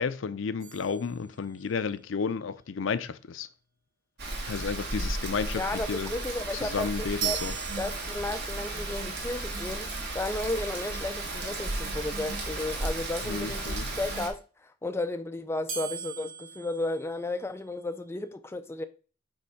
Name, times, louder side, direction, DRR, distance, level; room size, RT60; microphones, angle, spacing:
voice 1, 0.0-3.5 4.5-6.1 6.5-7.5 13.2-13.9, left 5 dB, 70° left, 0.5 m, -32 dB
sound 1, 0.6-1.9 7.2-8.7 15.7-17.8, right 8 dB, 90° right, 1.6 m, -38 dB
Rain, 4.2-14.3, right 2 dB, 55° right, 1.6 m, -34 dB
voice 2, 5.6-7.4 7.8-18.8, left 2 dB, 10° left, 0.3 m, -34 dB
5.3 x 3.6 x 5.6 m
head